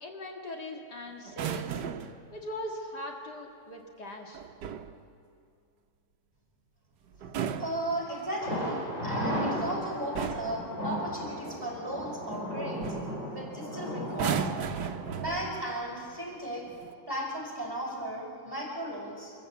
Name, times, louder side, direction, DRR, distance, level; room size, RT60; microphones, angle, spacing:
voice 1, 0.0-1.8 2.3-4.4, left 1 dB, 65° left, 1 dB, 2.5 m, -40 dB
sound 1, 1.3-2.2 4.3-5.0 7.1-8.5 9.5-9.8 10.1-10.6 12.3-12.5 12.8-13.1 14.1-15.7 16.7-16.9, right 7 dB, 70° right, 1.5 m, -35 dB
voice 2, 7.6-12.8 13.3-14.4 15.1-16.7 17.1-19.3, right 1 dB, 10° right, -3 dB, 5.0 m, -35 dB
Thunder, 8.4-16.2 16.5-16.6 17.0-17.1, equal, 45° left, 6.8 m, -35 dB
25.5 x 14.5 x 8.4 m, 2.5 s
omnidirectional pair, 1.9 m